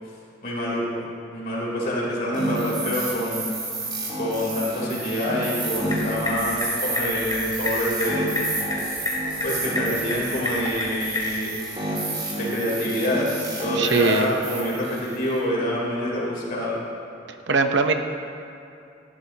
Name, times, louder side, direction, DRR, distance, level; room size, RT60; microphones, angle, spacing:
voice 1, 0.4-3.5 4.2-8.4 9.4-11.5 12.4-13.3 13.6-16.8, equal, 50° left, -5 dB, 3.3 m, -26 dB
sound 1, 2.3-15.4, right 2 dB, 25° right, 3.1 m, -30 dB
sound 2, 5.7-11.4, left 1 dB, 20° left, 2.5 m, -30 dB
voice 2, 13.7-14.3 17.5-17.9, right 4 dB, 65° right, 6 dB, 0.8 m, -20 dB
17.5 x 12.5 x 2.8 m, 2.6 s
head